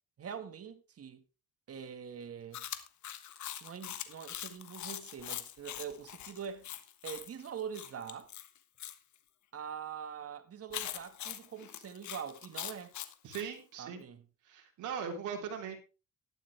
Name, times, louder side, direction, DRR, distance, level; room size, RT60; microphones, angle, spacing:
voice 1, 0.2-1.2 1.7-2.7 3.6-6.7 7.0-8.3 9.5-12.9 13.8-14.2, right 7 dB, 50° right, 1.7 m, -44 dB
Chewing mastication, 2.5-9.0 10.7-13.5, left 11 dB, 75° left, 1.4 m, -43 dB
voice 2, 13.2-14.1 14.4-15.8, right 7 dB, 80° right, 3.2 m, -39 dB
12.5 x 11.0 x 3.4 m
cardioid pair, 90°, 30 cm